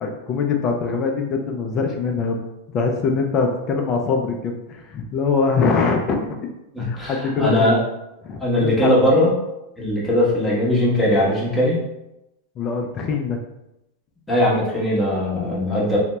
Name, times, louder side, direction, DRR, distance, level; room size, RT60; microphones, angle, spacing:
voice 1, 0.0-6.3 6.8-7.8 8.2-9.0 12.6-13.4, left 5 dB, 30° left, 2 dB, 0.4 m, -23 dB
voice 2, 6.7-7.8 8.4-9.3 9.8-11.8 14.3-16.0, left 1 dB, 5° left, -6 dB, 0.9 m, -19 dB
2.7 x 2.2 x 3.0 m, 0.90 s
supercardioid pair, 145°, 0 cm